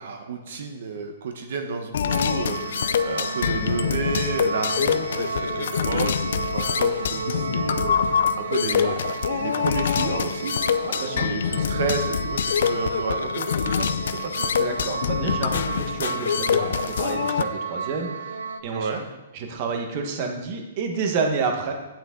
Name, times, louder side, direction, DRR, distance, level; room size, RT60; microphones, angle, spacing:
voice 1, 0.0-9.0 9.3-10.6 11.0-14.4 18.7-19.0, right 5 dB, 65° right, 5 dB, 1.0 m, -31 dB
sound 1, 1.9-17.4, left 8 dB, 70° left, 0.4 m, -25 dB
sound 2, 2.1-18.6, right 4 dB, 80° right, 0.6 m, -32 dB
voice 2, 10.8-11.3 14.6-18.9 19.3-21.7, right 4 dB, 40° right, 3 dB, 1.4 m, -29 dB
8.8 x 8.3 x 3.8 m, 1.1 s
hypercardioid pair, 155°, 0 cm